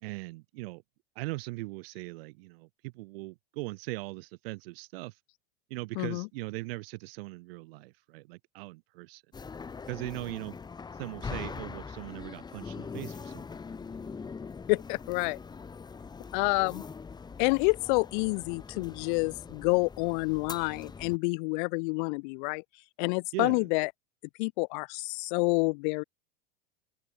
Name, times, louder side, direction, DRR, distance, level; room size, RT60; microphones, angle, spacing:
voice 1, 0.0-0.8 1.2-5.1 5.7-9.2 9.9-10.6 11.0-14.1 23.3-23.7, right 22 dB, 65° right, 2.0 m, -40 dB
voice 2, 6.0-6.3 14.7-15.4 16.3-16.8 17.4-22.6 23.0-23.9 24.4-26.0, left 30 dB, 50° left, 0.4 m, -28 dB
sound 1, 9.3-21.2, left 5 dB, 15° left, 1.6 m, -42 dB
open air
supercardioid pair, 140°, 31 cm